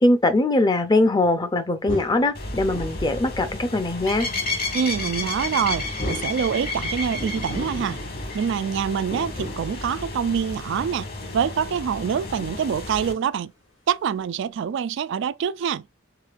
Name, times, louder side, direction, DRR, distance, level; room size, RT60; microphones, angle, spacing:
voice 1, 0.0-4.3, left 2 dB, 20° left, 0.6 m, -21 dB
sound 1, 1.8-3.4 5.2-6.8 7.1-9.9 12.2-12.7 14.2-14.3, left 1 dB, 70° left, 2.5 m, -36 dB
sound 2, 2.3-13.1, left 2 dB, 50° left, 1.6 m, -32 dB
voice 2, 4.7-8.0 8.3-13.5 13.9-15.9, right 7 dB, 65° right, 0.3 m, -25 dB
4.9 x 3.6 x 2.4 m
head